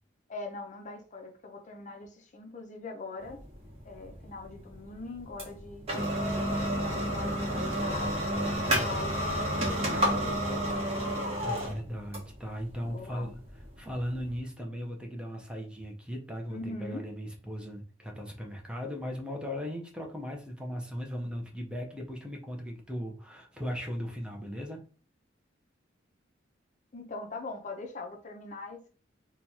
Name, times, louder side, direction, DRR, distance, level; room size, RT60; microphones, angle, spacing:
voice 1, 0.3-3.4 3.8-5.9 6.7-8.2 8.6-10.6 11.0-11.1 12.8-13.3 16.5-17.1 26.9-28.9, left 3 dB, 40° left, 0.6 m, -42 dB
sound 1, 3.2-14.4, equal, 35° right, 1.2 m, -31 dB
voice 2, 8.0-9.0 11.4-24.8, equal, 5° right, 0.7 m, -38 dB
3.1 x 2.3 x 4.1 m
head